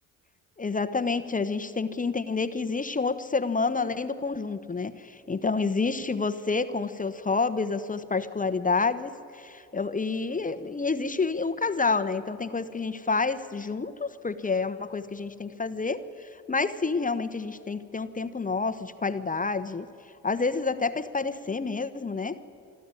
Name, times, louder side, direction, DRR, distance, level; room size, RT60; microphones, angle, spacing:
voice 1, 0.6-19.9 20.2-22.4, left 4 dB, 20° left, 11 dB, 1.0 m, -29 dB
26.0 x 12.5 x 9.8 m, 2.5 s
supercardioid pair, 65°, 36 cm